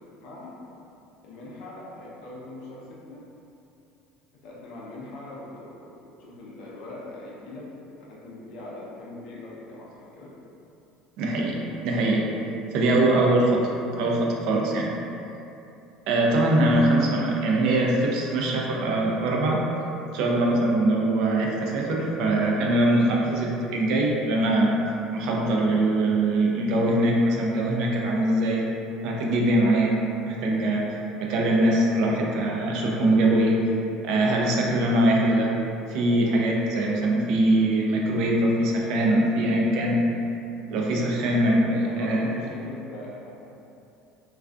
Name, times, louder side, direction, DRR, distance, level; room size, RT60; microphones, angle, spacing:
voice 1, 0.2-0.6 1.2-3.2 4.4-7.7 8.1-10.3 16.6-17.2 30.4-30.7 37.5-37.7 41.8-43.3, left 1 dB, 70° left, -5 dB, 0.6 m, -41 dB
voice 2, 11.2-12.3 12.7-13.7 14.0-14.9 16.1-19.6 20.1-24.8 25.1-28.6 29.0-30.0 30.3-30.9 31.2-33.6 34.0-35.5 35.9-40.0 40.7-42.3, right 1 dB, 70° right, -1 dB, 0.4 m, -22 dB
2.4 x 2.3 x 2.3 m, 2.7 s
supercardioid pair, 90°, 0 cm